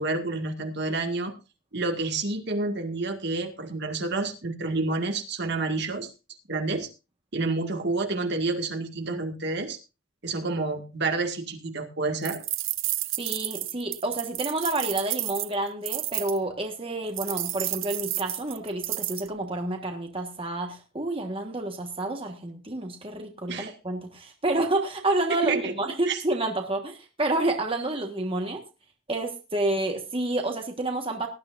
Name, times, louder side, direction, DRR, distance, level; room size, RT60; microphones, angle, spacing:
voice 1, 0.0-1.3 1.7-6.1 6.5-6.9 7.3-9.8 10.2-12.4 23.5-23.7 25.5-25.7 26.1-26.2, right 3 dB, 55° right, 5 dB, 2.0 m, -29 dB
sound 1, 12.2-16.4 17.2-19.3, right 15 dB, 75° right, 0.8 m, -31 dB
voice 2, 13.2-28.6 29.1-31.3, right 2 dB, 25° right, 3 dB, 1.5 m, -29 dB
18.5 x 12.0 x 2.6 m, 0.29 s
head